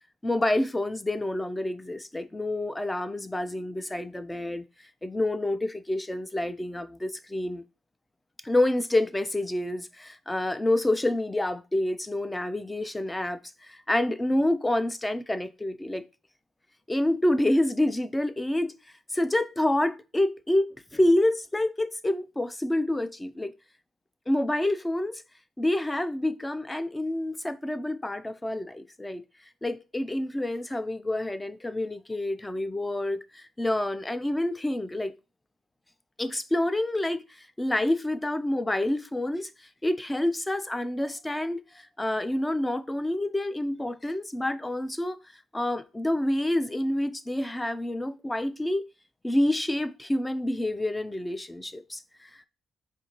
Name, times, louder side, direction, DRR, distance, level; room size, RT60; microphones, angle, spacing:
voice 1, 0.2-4.7 5.0-7.6 8.4-16.0 16.9-18.7 19.1-20.7 20.9-23.5 24.3-25.2 25.6-29.2 29.6-35.1 36.2-45.2 45.5-48.8 49.2-52.5, left 1 dB, 15° left, 0.4 m, -28 dB
4.3 x 2.5 x 2.9 m
cardioid pair, 90°, 0 cm